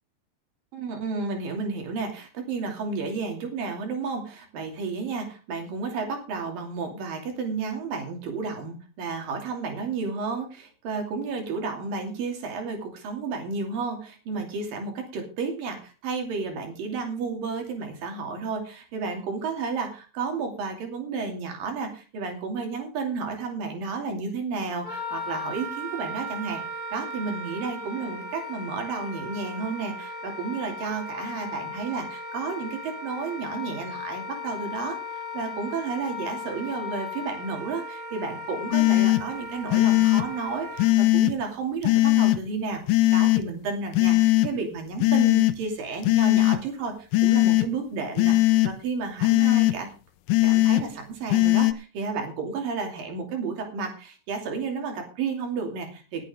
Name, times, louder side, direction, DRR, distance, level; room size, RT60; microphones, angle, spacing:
voice 1, 0.7-26.6 26.9-35.0 35.3-49.9 50.4-56.2, right 4 dB, 85° right, 3 dB, 4.5 m, -32 dB
Wind instrument woodwind instrument, 24.8-40.9, left 2 dB, 25° left, 5.0 m, -37 dB
sound 1, 38.7-39.2 39.7-40.2 40.8-41.3 41.8-42.4 42.9-43.4 43.9-44.5 45.0-45.5 46.0-46.6 47.1-47.7 48.2-48.7 49.2-49.7 50.3-50.8 51.3-51.7, left 18 dB, 80° left, 2.4 m, -19 dB
20.0 x 8.6 x 3.6 m, 0.34 s
omnidirectional pair, 3.9 m